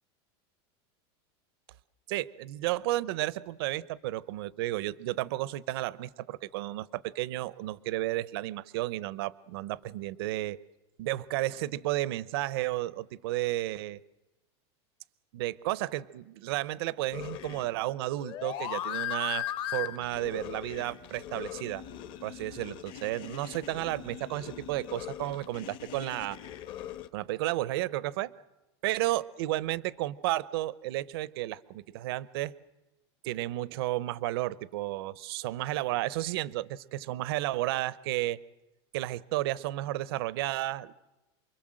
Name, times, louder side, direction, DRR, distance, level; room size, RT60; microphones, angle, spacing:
voice 1, 2.1-10.6 11.0-14.0 15.3-21.8 22.2-26.4 27.1-28.3 28.8-32.5 33.2-38.4 38.9-40.9, right 16 dB, 60° right, 20 dB, 0.8 m, -32 dB
sound 1, 17.1-27.1, left 12 dB, 35° left, 1.1 m, -39 dB
28.5 x 22.0 x 7.6 m, 1.0 s
supercardioid pair, 175°, 14 cm